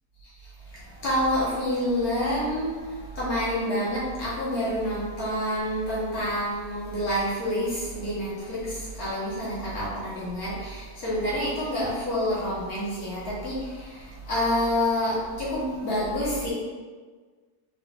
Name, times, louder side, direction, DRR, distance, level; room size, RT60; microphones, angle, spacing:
voice 1, 0.7-16.5, equal, 80° left, -8 dB, 1.8 m, -28 dB
3.9 x 3.6 x 2.5 m, 1.5 s
omnidirectional pair, 1.6 m